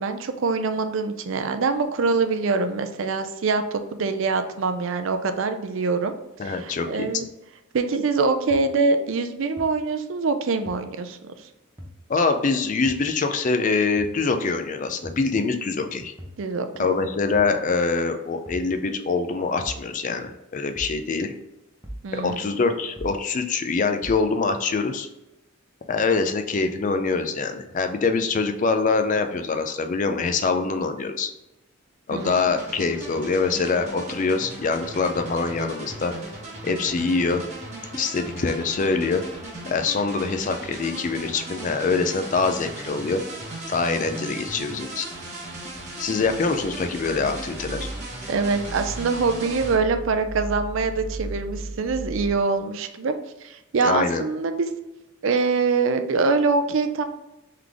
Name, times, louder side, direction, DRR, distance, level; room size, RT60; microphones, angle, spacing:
voice 1, 0.0-6.1 6.4-7.3 7.7-11.3 16.4-16.9 22.0-22.4 32.1-32.3 48.3-53.2 53.4-54.7 55.2-57.0, right 4 dB, 60° right, 8 dB, 0.4 m, -24 dB
voice 2, 6.4-7.3 12.1-16.1 16.8-21.3 22.1-25.1 25.9-31.3 32.1-36.1 36.6-37.4 37.9-39.2 39.7-43.2 43.7-45.1 46.0-47.9 53.8-54.2, left 4 dB, 35° left, 7 dB, 0.4 m, -24 dB
sound 1, 8.5-8.6 9.6-9.7 10.7-10.8 11.8-11.9 12.9-13.0 14.0-14.2 15.0-15.3 16.2-16.4 17.3-17.6 18.5-18.7 19.6-19.8 20.8-21.0 21.8-22.1 23.0-23.2 24.0-24.2, equal, 15° right, 0.8 m, -38 dB
sound 2, 32.2-49.7, right 1 dB, 35° right, 1.2 m, -37 dB
sound 3, 45.7-52.3, right 2 dB, 80° right, 0.8 m, -37 dB
3.8 x 3.3 x 3.5 m, 0.95 s
head